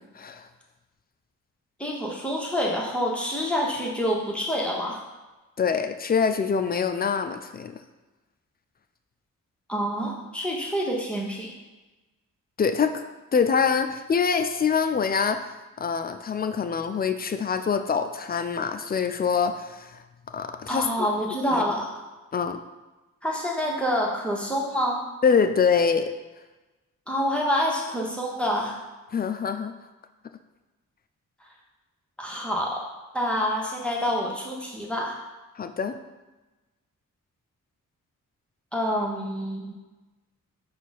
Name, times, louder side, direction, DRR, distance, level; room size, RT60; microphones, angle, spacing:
voice 1, 0.2-0.5 5.6-7.7 12.6-13.0 13.3-15.4 15.8-20.9 21.5-21.6 22.3-22.6 25.2-26.1 29.1-29.7 35.6-36.0, left 6 dB, 30° left, 8 dB, 0.4 m, -25 dB
voice 2, 1.8-5.0 9.7-11.5 20.7-22.0 23.2-25.0 27.1-28.8 32.2-32.8 33.1-35.1 38.7-39.7, equal, 5° left, -3 dB, 1.1 m, -27 dB
4.6 x 2.4 x 4.1 m, 1.1 s
supercardioid pair, 45°, 35 cm